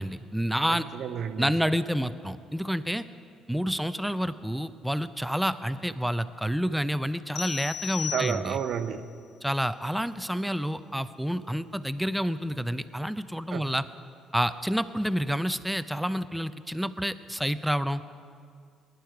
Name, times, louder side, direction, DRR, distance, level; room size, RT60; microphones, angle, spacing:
voice 1, 0.0-0.9 1.4-3.0 3.5-8.6 9.4-13.8 14.3-18.0, equal, ahead, 13 dB, 0.6 m, -29 dB
voice 2, 0.7-1.5 8.1-9.0 13.5-13.6, right 8 dB, 60° right, 10 dB, 0.8 m, -31 dB
sound 1, 7.4-8.9, left 9 dB, 70° left, 0.8 m, -36 dB
19.5 x 10.5 x 4.7 m, 2.2 s
hypercardioid pair, 60°, 0 cm